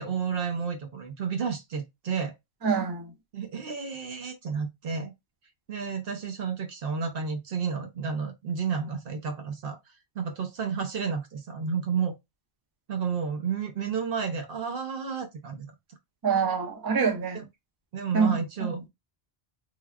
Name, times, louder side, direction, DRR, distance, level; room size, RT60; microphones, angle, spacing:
voice 1, 0.0-2.3 3.3-5.1 5.7-9.8 10.1-12.2 12.9-15.7 17.3-17.4 17.9-18.9, right 6 dB, 65° right, 0.8 m, -31 dB
voice 2, 2.6-3.1 16.2-17.4 18.1-18.8, right 5 dB, 30° right, 0.5 m, -26 dB
3.3 x 2.3 x 2.3 m
omnidirectional pair, 1.0 m